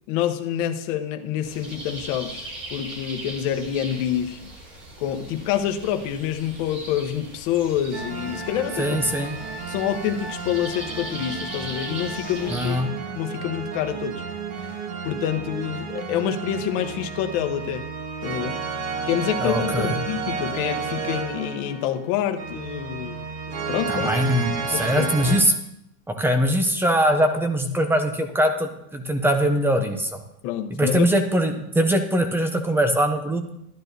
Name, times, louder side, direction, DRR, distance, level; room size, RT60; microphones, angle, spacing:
voice 1, 0.1-4.4 5.0-9.0 9.7-12.8 13.2-14.2 14.6-14.7 15.0-17.9 18.2-18.6 19.1-24.1 24.6-25.4 30.4-31.1, left 10 dB, 50° left, 7 dB, 1.1 m, -27 dB
sound 1, 1.4-12.8, right 2 dB, 25° right, 3.0 m, -40 dB
sound 2, 7.9-25.4, right 5 dB, 40° right, 1.8 m, -32 dB
voice 2, 8.8-9.3 12.5-12.9 19.4-19.9 23.9-25.5 26.1-30.2 30.7-33.5, equal, 5° right, 7 dB, 0.5 m, -22 dB
11.5 x 11.5 x 2.7 m, 0.79 s
supercardioid pair, 140°, 47 cm